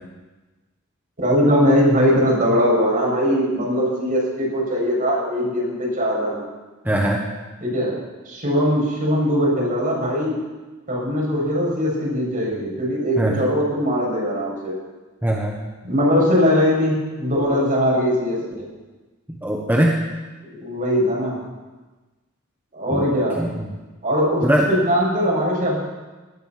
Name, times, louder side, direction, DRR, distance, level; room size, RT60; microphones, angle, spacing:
voice 1, 1.2-6.4 7.6-7.9 8.2-10.4 10.9-14.8 15.8-18.7 20.6-21.4 22.7-23.4 24.0-25.8, equal, 40° right, -4 dB, 6.4 m, -20 dB
voice 2, 6.8-7.2 13.2-13.4 15.2-15.6 19.4-20.0 22.9-23.1 23.4-23.6 24.4-24.7, right 1 dB, 10° right, -1 dB, 1.2 m, -20 dB
19.0 x 10.0 x 5.9 m, 1.2 s
head